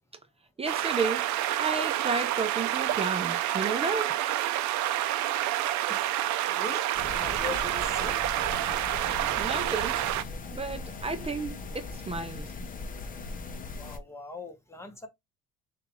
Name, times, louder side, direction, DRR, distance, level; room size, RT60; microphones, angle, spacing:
voice 1, 0.6-4.2 9.4-12.5, right 4 dB, 20° right, 0.5 m, -32 dB
sound 1, 0.7-10.2, right 13 dB, 65° right, 0.6 m, -28 dB
voice 2, 6.5-6.8 7.2-8.2 13.8-15.1, left 3 dB, 10° left, 1.2 m, -40 dB
sound 2, 7.0-14.0, left 3 dB, 25° left, 0.7 m, -39 dB
6.5 x 2.5 x 3.0 m
cardioid pair, 135°, 30 cm